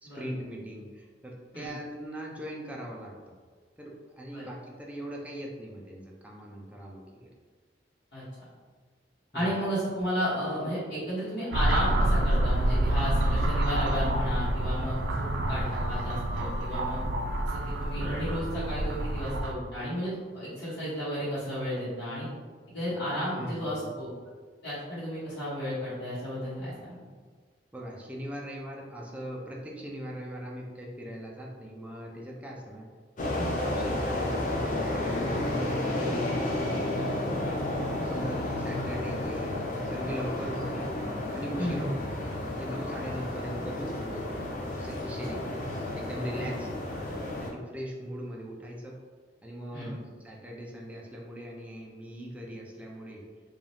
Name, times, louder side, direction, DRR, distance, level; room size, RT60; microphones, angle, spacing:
voice 1, 0.0-3.3 3.8-7.3 9.3-9.6 23.4-23.9 27.7-32.9 33.2-35.6 35.9-37.0 38.0-39.5 39.9-40.9 41.3-42.0 42.5-44.3 44.8-45.6 46.0-46.7 47.4-49.0 49.4-53.2, equal, 10° right, -2 dB, 0.4 m, -40 dB
voice 2, 9.3-17.0 17.4-22.3 22.7-24.1 24.6-27.0 33.4-33.7 38.0-38.1 40.6-40.7 41.6-41.9 46.3-46.5 49.7-49.9, equal, 70° left, -12 dB, 1.1 m, -33 dB
sound 1, 11.5-19.5, right 1 dB, 85° right, 0.3 m, -27 dB
sound 2, 33.2-47.5, left 1 dB, 50° left, 0.6 m, -32 dB
2.6 x 2.3 x 3.2 m, 1.5 s
head